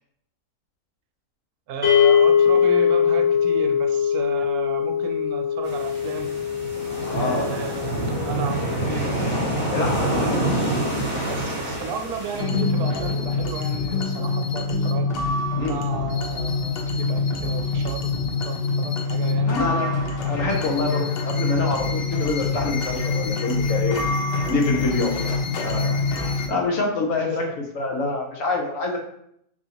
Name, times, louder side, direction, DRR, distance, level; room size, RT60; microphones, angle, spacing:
voice 1, 1.7-6.3 7.1-9.1 9.9-10.8 11.2-15.1 15.6-18.2 18.4-19.6 20.2-20.7 27.1-27.5, right 5 dB, 80° right, 5 dB, 1.1 m, -34 dB
sound 1, 1.8-12.1, left 8 dB, 25° right, 0.9 m, -23 dB
sound 2, 5.6-12.4, right 1 dB, 35° left, 1.5 m, -26 dB
voice 2, 6.8-7.5 9.7-10.0 15.6-15.8 19.4-19.9 20.3-24.0 24.5-27.5 27.7-29.0, left 3 dB, 60° left, 0 dB, 1.0 m, -26 dB
sound 3, 12.4-26.5, left 3 dB, 85° left, 0.5 m, -25 dB
4.8 x 2.6 x 2.8 m, 0.72 s
omnidirectional pair, 1.6 m